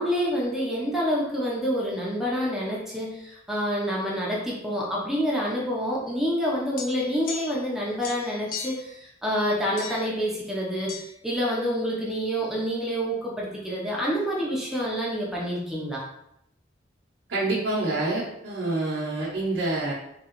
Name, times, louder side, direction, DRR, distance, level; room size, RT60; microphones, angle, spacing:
voice 1, 0.0-10.9 11.2-16.0, equal, ahead, -5 dB, 0.7 m, -27 dB
sound 1, 6.8-7.7 8.0-8.9 9.8-10.2 10.9-11.1, left 6 dB, 50° left, 0.5 m, -37 dB
voice 2, 17.3-19.9, right 2 dB, 60° right, -6 dB, 0.8 m, -27 dB
3.7 x 2.9 x 3.0 m, 0.78 s
head